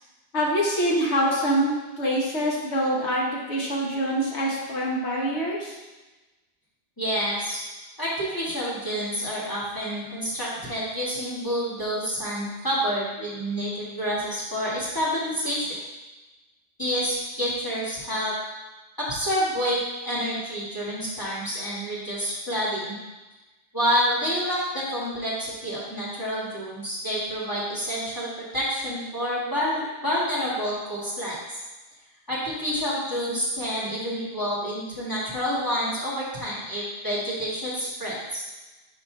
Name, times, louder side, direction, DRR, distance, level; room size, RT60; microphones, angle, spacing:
voice 1, 0.3-5.8, equal, 65° left, -3 dB, 1.5 m, -25 dB
voice 2, 7.0-7.6 8.0-15.7 16.8-18.3 19.0-23.0 23.7-28.3 28.5-31.4 32.3-38.4, equal, 15° left, -7 dB, 1.7 m, -28 dB
5.5 x 4.0 x 4.6 m, 1.1 s
omnidirectional pair, 1.2 m